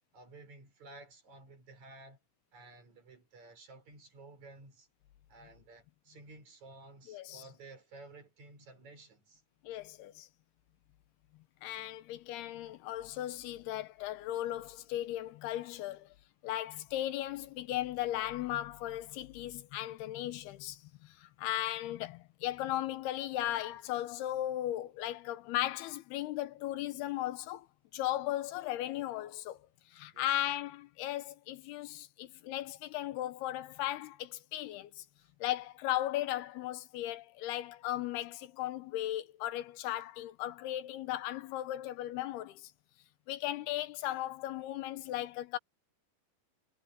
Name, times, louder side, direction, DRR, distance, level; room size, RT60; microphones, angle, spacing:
voice 1, 0.1-2.2 2.5-4.9 5.3-9.4 30.1-30.5 35.2-35.3, right 2 dB, 45° right, 6.4 m, -54 dB
voice 2, 7.1-7.4 9.6-10.3 11.6-16.1 16.4-27.7 27.9-29.6 29.9-35.0 35.4-42.7 43.3-45.6, left 14 dB, 85° left, 2.9 m, -37 dB
omnidirectional pair, 4.6 m